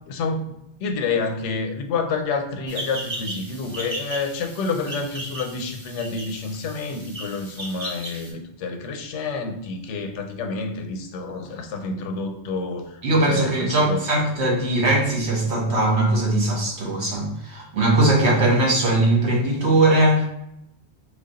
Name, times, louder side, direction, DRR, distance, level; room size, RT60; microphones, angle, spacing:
voice 1, 0.1-0.5 0.8-14.0, left 4 dB, 85° left, 5 dB, 0.9 m, -28 dB
sound 1, 2.7-8.3, right 1 dB, 55° right, 1.6 m, -36 dB
voice 2, 13.0-20.2, right 2 dB, 70° right, -2 dB, 1.3 m, -20 dB
3.1 x 2.3 x 3.8 m, 0.81 s
omnidirectional pair, 1.2 m